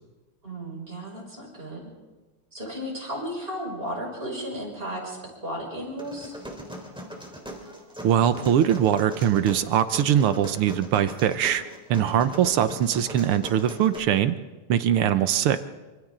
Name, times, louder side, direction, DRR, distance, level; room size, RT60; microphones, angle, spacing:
voice 1, 0.4-1.9 2.5-6.4 11.9-12.3, equal, 25° right, -2 dB, 6.4 m, -34 dB
sound 1, 6.0-14.0, equal, ahead, 3.4 m, -40 dB
voice 2, 8.0-11.6 11.9-14.4 14.7-15.6, right 10 dB, 85° right, 11 dB, 1.8 m, -22 dB
27.5 x 25.0 x 3.8 m, 1.2 s
omnidirectional pair, 2.3 m